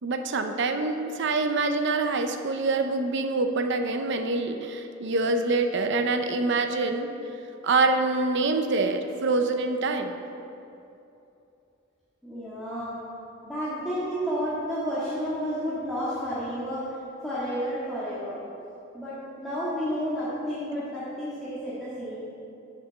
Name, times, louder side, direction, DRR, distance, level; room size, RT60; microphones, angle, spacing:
voice 1, 0.0-7.1 7.6-10.2, right 3 dB, 60° right, 6 dB, 0.6 m, -25 dB
voice 2, 12.2-13.0 13.4-17.0 17.2-18.4 18.9-22.2, equal, ahead, -12 dB, 1.7 m, -31 dB
7.2 x 6.5 x 7.0 m, 2.8 s
head